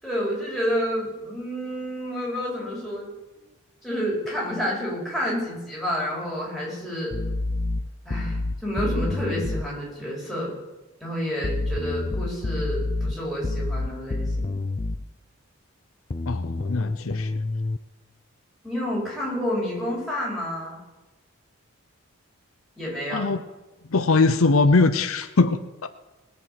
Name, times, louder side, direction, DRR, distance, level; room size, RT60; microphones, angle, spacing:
voice 1, 0.0-3.1 3.8-7.1 8.0-10.5 11.0-14.5 18.6-20.8 22.8-23.3, equal, ahead, -5 dB, 5.0 m, -29 dB
sound 1, 7.1-9.7 11.4-15.1 16.1-17.8, left 2 dB, 30° left, 0.4 m, -28 dB
voice 2, 16.3-17.3 23.1-23.4 23.9-25.9, left 3 dB, 75° left, 10 dB, 0.7 m, -21 dB
20.0 x 6.8 x 7.7 m, 1.1 s
head